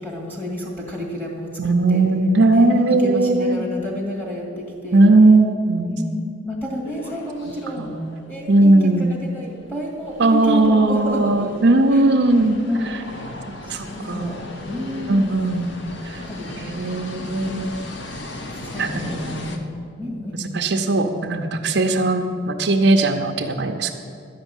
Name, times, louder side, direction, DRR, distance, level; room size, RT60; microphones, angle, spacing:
voice 1, 0.0-2.0 2.5-5.0 5.8-7.9 8.3-11.5 11.9-12.0 12.7-13.0 13.7-14.4 14.7-15.3 16.3-17.7 18.6-20.4, equal, 10° left, -2 dB, 1.9 m, -30 dB
voice 2, 1.6-3.6 4.9-6.0 7.8-8.0 8.5-9.2 10.2-13.0 13.6-14.5 15.1-16.2 16.5-17.7 18.7-19.6 20.3-23.9, right 2 dB, 60° right, 2 dB, 0.7 m, -18 dB
sound 1, 6.8-19.6, left 1 dB, 60° left, 0.9 m, -37 dB
12.0 x 5.3 x 8.9 m, 2.4 s
head